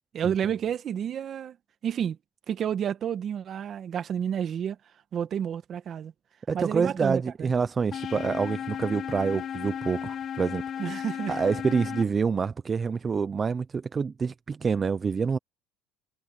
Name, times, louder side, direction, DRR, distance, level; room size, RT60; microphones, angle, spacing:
voice 1, 0.1-1.6 1.8-2.2 2.5-4.8 5.1-6.1 6.5-7.5 10.8-11.4, right 9 dB, 45° right, 1.7 m, -30 dB
voice 2, 6.5-10.6 11.3-15.4, right 5 dB, 30° right, 0.6 m, -27 dB
sound 1, 7.9-12.0, left 8 dB, 45° left, 1.0 m, -34 dB
supercardioid pair, 110°, 0 cm